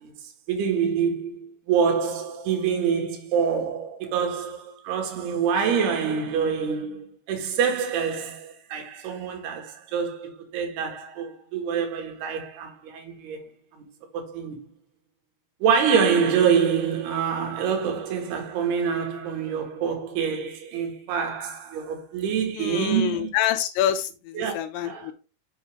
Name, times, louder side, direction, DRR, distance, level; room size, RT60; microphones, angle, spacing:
voice 1, 0.0-13.8 14.1-14.6 15.6-23.3 24.3-24.5 24.8-25.1, right 7 dB, 60° right, 3.4 m, -26 dB
voice 2, 22.5-25.1, left 11 dB, 85° left, 2.6 m, -26 dB
7.4 x 6.5 x 3.6 m
omnidirectional pair, 5.9 m